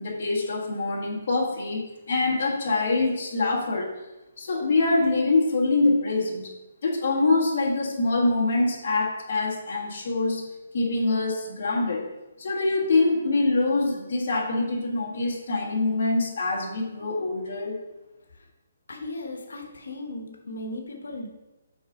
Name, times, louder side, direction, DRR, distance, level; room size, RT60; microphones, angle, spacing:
voice 1, 0.0-3.9 4.4-6.5 6.8-10.4 10.7-12.1 12.4-17.8, left 3 dB, 40° left, -3 dB, 1.5 m, -24 dB
voice 2, 18.9-21.3, left 2 dB, 85° left, 2 dB, 1.0 m, -37 dB
6.0 x 3.8 x 4.9 m, 1.0 s
hypercardioid pair, 180°, 0 cm